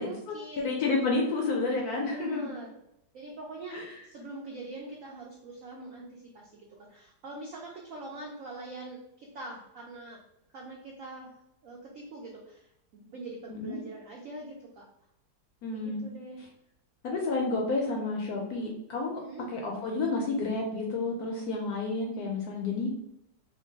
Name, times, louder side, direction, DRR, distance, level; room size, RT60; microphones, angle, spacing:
voice 1, 0.0-0.8 2.1-2.7 3.1-10.2 10.5-14.9 15.7-16.5 19.1-19.5, right 2 dB, 85° right, -1 dB, 0.7 m, -43 dB
voice 2, 0.6-2.4 3.7-3.8 13.5-13.8 15.6-16.1 17.0-19.2 19.5-22.9, left 3 dB, 70° left, 0 dB, 0.9 m, -30 dB
3.0 x 2.2 x 3.8 m, 0.81 s
omnidirectional pair, 2.1 m